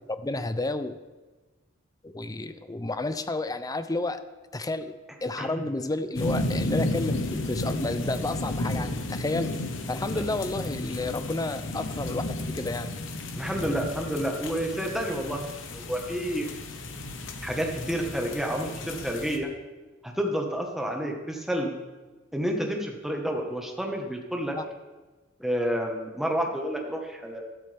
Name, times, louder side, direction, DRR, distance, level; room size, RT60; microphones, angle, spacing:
voice 1, 0.1-1.0 2.0-4.2 4.5-4.9 5.2-9.5 9.9-13.0 24.6-24.7, left 2 dB, 20° left, 11 dB, 0.5 m, -31 dB
sound 1, 6.1-19.4, left 1 dB, 65° left, 1.1 m, -33 dB
voice 2, 13.3-16.5 17.4-19.5 20.0-21.8 22.3-24.6 25.4-27.4, equal, ahead, 1 dB, 1.3 m, -30 dB
12.5 x 12.0 x 3.5 m, 1.3 s
head